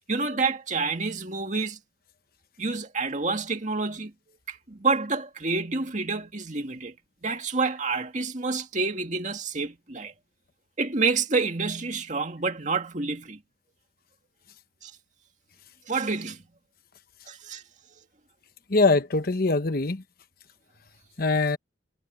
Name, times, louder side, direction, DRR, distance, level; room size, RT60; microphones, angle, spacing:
voice 1, 0.1-1.8 2.6-4.1 4.5-6.9 7.2-10.1 10.8-13.4 14.8-14.9 15.9-16.4 17.3-17.6, right 4 dB, 40° right, 2.2 m, -28 dB
voice 2, 18.7-20.0 21.2-21.6, left 3 dB, 50° left, 1.0 m, -22 dB
head